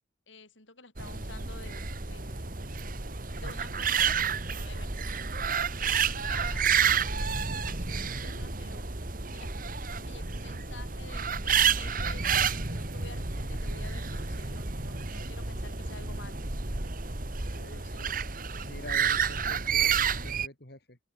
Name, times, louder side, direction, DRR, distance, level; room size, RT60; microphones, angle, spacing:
voice 1, 0.3-2.5 3.4-5.1 5.8-8.9 9.3-9.5 10.0-16.4 17.6-18.2 18.8-19.1, left 3 dB, 80° left, 6.2 m, -50 dB
sound 1, 1.0-20.5, right 6 dB, 45° right, 2.0 m, -30 dB
voice 2, 17.5-18.1 18.6-21.0, left 1 dB, 55° left, 3.9 m, -47 dB
open air
head